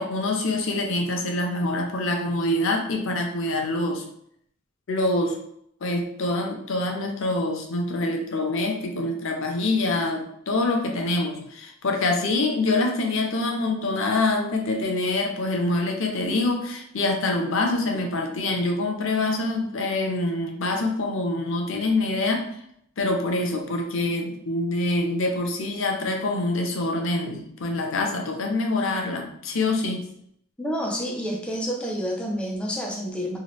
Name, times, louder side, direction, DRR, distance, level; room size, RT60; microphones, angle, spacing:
voice 1, 0.0-4.0 4.9-5.4 5.8-22.5 23.0-30.1, left 2 dB, 60° left, 2 dB, 0.5 m, -25 dB
voice 2, 30.6-33.4, equal, 5° left, 0 dB, 0.4 m, -29 dB
2.9 x 2.4 x 3.0 m, 0.70 s
head